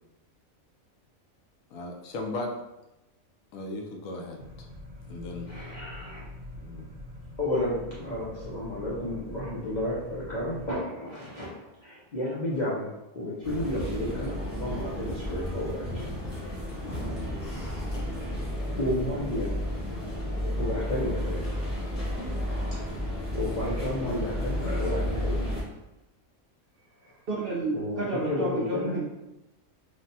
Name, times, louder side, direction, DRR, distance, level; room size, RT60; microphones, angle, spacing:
voice 1, 1.7-2.5 3.5-4.7 5.1-5.5 6.6-6.9, left 2 dB, 75° left, 2 dB, 1.0 m, -36 dB
sound 1, 4.4-10.7, left 1 dB, 40° right, 0.9 m, -44 dB
voice 2, 5.5-6.2 7.4-16.1 17.2-17.9 18.8-19.6 20.6-21.5 22.7-22.8 23.3-25.3 27.0-27.1 27.7-29.0, left 1 dB, 55° left, -8 dB, 0.4 m, -32 dB
sound 2, 13.4-25.6, equal, 30° left, 0.8 m, -32 dB
voice 3, 27.3-29.1, right 2 dB, 65° right, -5 dB, 0.6 m, -30 dB
3.2 x 2.2 x 2.6 m, 0.97 s
omnidirectional pair, 1.4 m